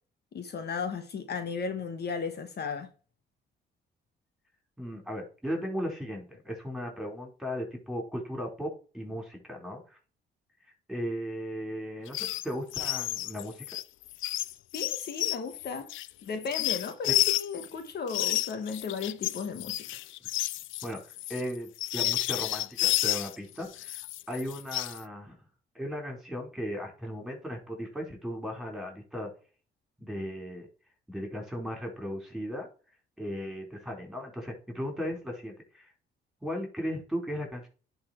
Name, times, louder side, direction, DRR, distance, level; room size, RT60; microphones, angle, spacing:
voice 1, 0.3-2.9 14.7-15.9 16.2-19.9, left 5 dB, 55° left, 1.3 m, -35 dB
voice 2, 4.8-10.0 10.6-13.7 17.1-17.2 20.8-21.0 21.3-24.0 24.3-25.4 25.7-29.3 30.0-30.7 31.1-32.7 33.2-35.9 36.4-37.7, equal, ahead, 4.3 m, -36 dB
sound 1, 12.1-12.5 12.7-17.7 18.1-23.4 23.7-25.0, left 16 dB, 80° left, 0.4 m, -31 dB
10.5 x 4.2 x 4.5 m
cardioid pair, 90°, 20 cm